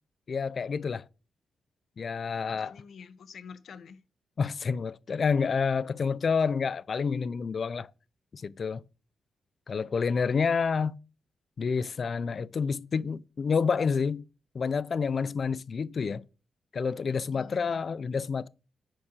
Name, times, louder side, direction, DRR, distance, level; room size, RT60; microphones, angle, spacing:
voice 1, 0.3-1.0 2.0-2.7 4.4-7.9 8.3-8.8 9.7-11.0 11.6-14.2 14.5-16.2 16.7-18.5, left 5 dB, 45° left, 0.4 m, -28 dB
voice 2, 2.5-4.0 17.3-17.8, left 6 dB, 65° left, 0.9 m, -47 dB
8.6 x 4.5 x 6.3 m
wide cardioid pair, 135°, 0 cm